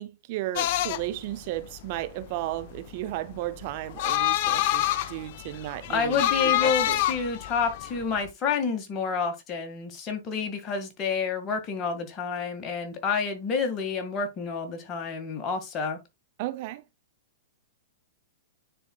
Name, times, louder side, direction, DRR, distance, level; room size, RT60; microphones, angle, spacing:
voice 1, 0.0-7.0 16.4-16.8, right 15 dB, 50° right, 0.6 m, -34 dB
sound 1, 0.6-8.3, left 14 dB, 50° left, 0.4 m, -27 dB
voice 2, 5.9-16.0, left 5 dB, 30° left, 1.9 m, -29 dB
9.9 x 4.3 x 2.3 m
hypercardioid pair, 110°, 0 cm